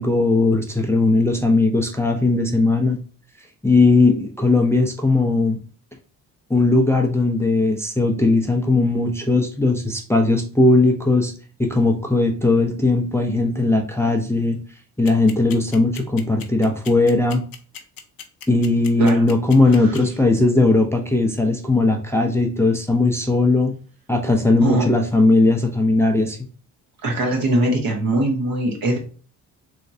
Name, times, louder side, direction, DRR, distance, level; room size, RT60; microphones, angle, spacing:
voice 1, 0.0-3.0 3.6-5.6 6.5-11.3 11.6-14.6 15.0-17.4 18.5-23.7 24.1-26.4, left 2 dB, 5° left, 2 dB, 0.5 m, -18 dB
sound 1, 15.1-20.0, left 8 dB, 60° left, 0.7 m, -37 dB
voice 2, 27.0-29.0, right 1 dB, 60° right, 1 dB, 1.3 m, -21 dB
3.2 x 3.1 x 2.6 m, 0.39 s
supercardioid pair, 60°, 39 cm